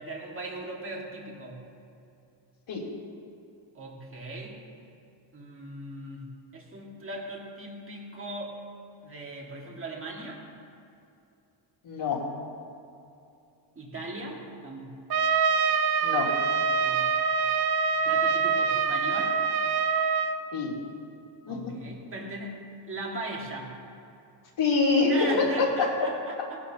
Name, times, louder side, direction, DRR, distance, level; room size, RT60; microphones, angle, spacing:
voice 1, 0.0-1.7 3.7-4.6 5.3-8.6 9.0-10.5 13.8-14.9 16.6-17.1 18.0-19.4 21.5-23.8 25.1-26.6, right 2 dB, 25° right, -1 dB, 2.0 m, -38 dB
voice 2, 11.8-12.3 16.0-16.4 20.5-20.7 21.5-21.7 24.6-25.9, left 4 dB, 75° left, -5 dB, 3.3 m, -25 dB
Trumpet, 15.1-20.4, right 6 dB, 50° right, 0.6 m, -25 dB
19.0 x 11.5 x 2.9 m, 2.6 s
wide cardioid pair, 165°, 47 cm